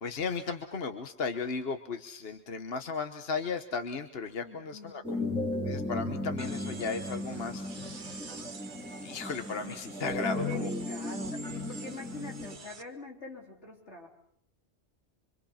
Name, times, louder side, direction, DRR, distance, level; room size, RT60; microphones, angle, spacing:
voice 1, 0.0-5.3 5.6-8.1 9.0-10.7, left 4 dB, 60° left, 7 dB, 1.4 m, -35 dB
voice 2, 4.4-5.0 10.2-14.1, left 2 dB, 85° left, 0 dB, 4.2 m, -44 dB
sound 1, 5.0-12.5, left 1 dB, 5° left, 2.4 m, -36 dB
sound 2, 6.4-12.8, right 4 dB, 45° right, 1.4 m, -48 dB
26.0 x 25.5 x 5.7 m, 0.64 s
omnidirectional pair, 1.1 m